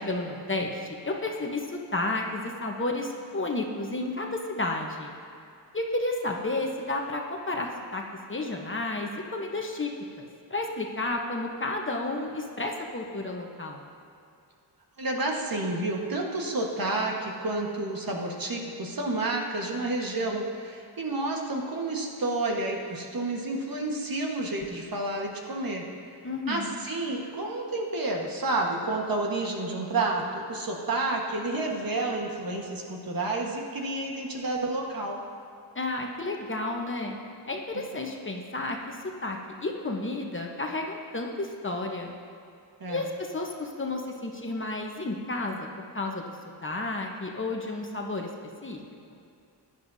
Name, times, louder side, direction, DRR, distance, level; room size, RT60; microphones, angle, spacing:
voice 1, 0.0-5.1 5.7-8.0 8.3-9.9 10.2-13.9 26.2-26.7 35.7-37.2 37.5-42.1 42.9-45.7 45.9-46.3 46.6-48.3 48.6-48.8, left 2 dB, 25° left, 1 dB, 1.0 m, -32 dB
voice 2, 15.0-25.8 26.5-35.2 37.7-37.9 42.8-43.0, right 2 dB, 50° right, 0 dB, 1.5 m, -30 dB
16.0 x 10.5 x 2.7 m, 2.5 s
wide cardioid pair, 90°, 44 cm